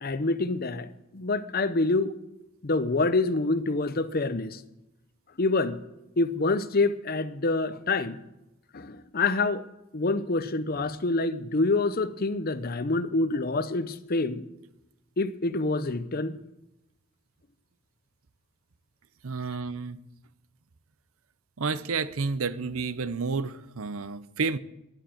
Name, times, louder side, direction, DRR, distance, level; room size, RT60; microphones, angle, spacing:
voice 1, 0.0-2.1 2.6-4.6 5.4-5.8 6.2-8.2 8.7-9.6 9.9-14.4 15.2-16.4, left 3 dB, 45° left, 0.7 m, -26 dB
voice 2, 19.2-20.0 21.6-24.6, right 4 dB, 80° right, 0.7 m, -30 dB
11.5 x 11.0 x 7.7 m
head